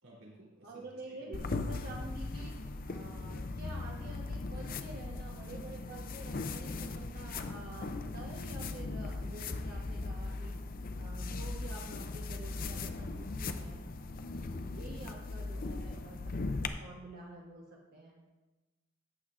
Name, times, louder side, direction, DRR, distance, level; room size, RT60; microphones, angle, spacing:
voice 1, 0.0-1.6 14.8-15.2, right 1 dB, 85° right, -4 dB, 3.6 m, -55 dB
voice 2, 0.6-2.5 2.9-10.5 11.0-13.8 14.5-18.2, right 2 dB, 45° right, -4 dB, 1.2 m, -49 dB
sound 1, 1.3-16.7, left 3 dB, 45° left, 0.5 m, -39 dB
14.0 x 9.3 x 2.5 m, 1.2 s
head